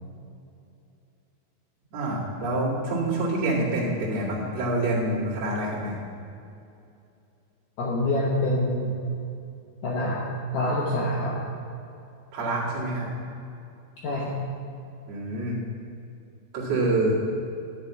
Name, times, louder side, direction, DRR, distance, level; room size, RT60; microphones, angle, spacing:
voice 1, 1.9-6.0 12.3-13.1 15.1-15.6 16.5-17.2, right 2 dB, 50° right, -8 dB, 2.4 m, -26 dB
voice 2, 7.8-8.9 9.8-10.2 10.5-11.4 14.0-14.3, left 1 dB, 80° left, -5 dB, 1.9 m, -26 dB
10.0 x 5.1 x 8.1 m, 2.6 s
omnidirectional pair, 5.4 m